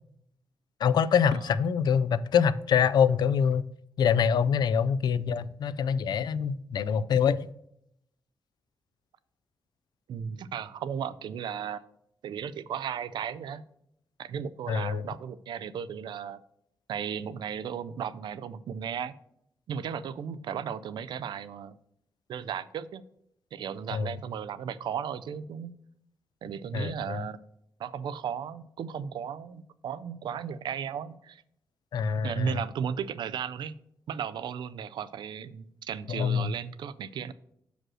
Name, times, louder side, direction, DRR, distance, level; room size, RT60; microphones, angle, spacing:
voice 1, 0.8-3.6 4.0-7.5 14.7-15.1 23.9-24.1 26.7-27.2 31.9-32.6 36.1-36.5, left 7 dB, 65° left, 0.3 m, -25 dB
voice 2, 10.1-11.8 12.2-13.6 14.2-16.4 16.9-19.1 19.7-21.8 22.3-23.0 23.5-25.7 26.4-27.4 27.8-31.4 32.2-33.7 34.1-37.3, right 7 dB, 85° right, 0.4 m, -35 dB
6.2 x 5.0 x 6.2 m
wide cardioid pair, 165°, 8 cm